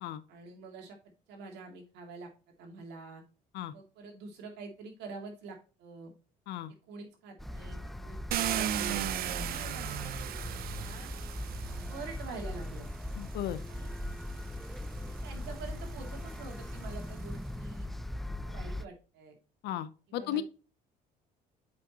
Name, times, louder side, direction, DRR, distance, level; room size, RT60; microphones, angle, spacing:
voice 1, 0.3-1.0 1.3-2.3 2.6-3.2 3.7-6.1 6.9-10.3 10.8-11.1 11.9-12.9 13.7-13.9 15.1-17.9 18.4-19.4 20.2-20.4, right 4 dB, 85° right, 2 dB, 2.4 m, -46 dB
sound 1, 7.4-18.9, left 1 dB, ahead, 0.3 m, -40 dB
Car, 8.3-12.4 13.4-13.5 14.0-17.3, right 11 dB, 65° right, 0.6 m, -37 dB
voice 2, 13.2-13.6 19.6-20.4, left 11 dB, 80° left, 14 dB, 0.8 m, -35 dB
8.3 x 5.1 x 2.9 m, 0.36 s
cardioid pair, 110°, 17 cm